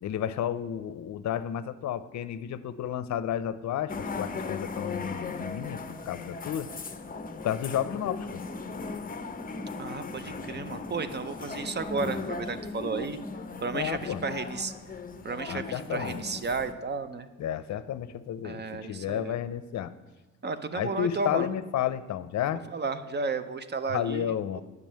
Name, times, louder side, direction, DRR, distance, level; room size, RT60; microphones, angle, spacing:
voice 1, 0.0-6.7 7.4-8.4 13.7-14.2 15.5-16.2 17.4-19.9 20.7-22.6 23.9-24.6, left 10 dB, 60° left, 14 dB, 0.6 m, -32 dB
sound 1, 3.9-16.7, left 4 dB, 25° left, 0.8 m, -37 dB
voice 2, 9.8-13.2 13.6-14.7 15.2-17.3 18.4-19.3 20.4-21.5 22.7-24.6, right 4 dB, 35° right, 12 dB, 0.7 m, -33 dB
9.6 x 5.3 x 7.5 m, 1.1 s
cardioid pair, 100°, 31 cm